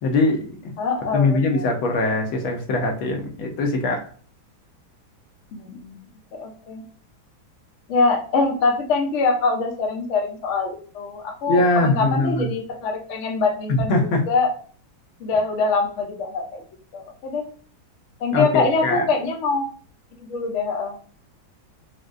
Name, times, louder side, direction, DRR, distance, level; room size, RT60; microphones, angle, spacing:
voice 1, 0.0-0.7 1.1-4.0 11.5-12.5 13.7-14.2 18.3-19.1, left 2 dB, 85° left, 2 dB, 1.6 m, -21 dB
voice 2, 0.8-1.7 5.5-6.0 6.4-6.8 7.9-14.5 15.2-16.6 16.9-17.4 18.2-19.7 20.2-21.1, left 4 dB, 70° left, 2 dB, 0.7 m, -24 dB
4.8 x 2.1 x 2.5 m, 0.44 s
omnidirectional pair, 2.2 m